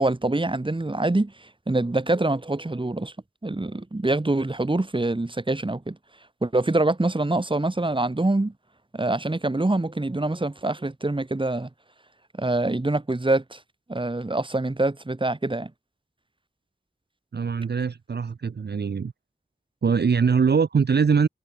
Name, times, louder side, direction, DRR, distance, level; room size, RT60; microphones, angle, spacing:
voice 1, 0.0-3.1 3.4-6.0 6.4-8.5 8.9-11.7 12.4-13.6 13.9-15.7, right 2 dB, 25° right, 1.1 m, -25 dB
voice 2, 17.3-19.1 19.8-21.3, right 6 dB, 60° right, 0.5 m, -22 dB
wide cardioid pair, 45°, 19 cm